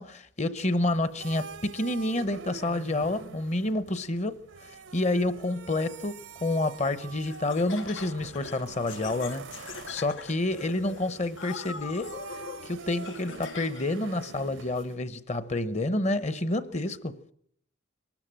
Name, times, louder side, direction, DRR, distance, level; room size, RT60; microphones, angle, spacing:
voice 1, 0.0-12.1 12.6-17.3, left 2 dB, 35° left, 0.9 m, -29 dB
sound 1, 0.9-14.9, right 5 dB, 75° right, 0.8 m, -46 dB
Laughter, 7.2-14.0, left 5 dB, 75° left, 0.8 m, -43 dB
22.5 x 13.5 x 9.0 m
head